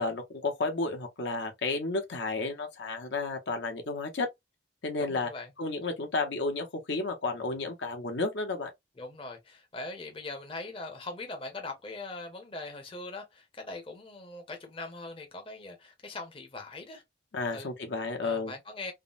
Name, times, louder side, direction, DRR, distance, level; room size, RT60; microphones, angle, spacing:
voice 1, 0.0-4.3 4.8-5.3 5.6-8.7 17.3-18.5, left 3 dB, 65° left, 0.7 m, -32 dB
voice 2, 5.0-5.5 9.0-17.0 17.5-17.7 18.2-18.9, left 2 dB, 30° left, 0.7 m, -41 dB
3.5 x 2.0 x 2.4 m
head